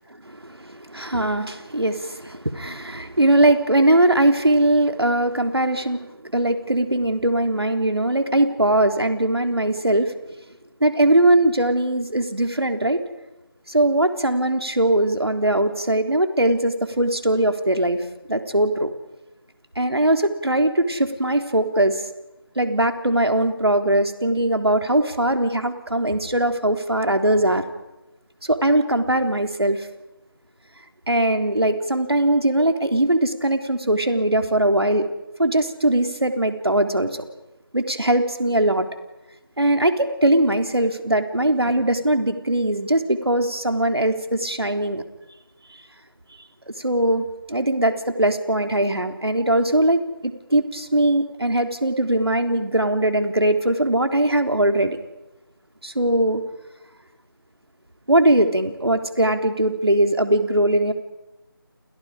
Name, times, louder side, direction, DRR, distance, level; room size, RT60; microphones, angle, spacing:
voice 1, 0.2-10.1 10.8-13.0 13.7-18.0 18.3-18.9 19.8-22.1 22.6-27.6 28.4-29.9 31.1-35.1 35.4-37.3 37.7-38.9 39.6-45.0 46.7-55.0 55.8-56.4 58.1-60.9, right 1 dB, 85° right, 6 dB, 3.6 m, -20 dB
29.5 x 29.0 x 5.1 m, 1.0 s
figure-of-eight pair, 170°, 13 cm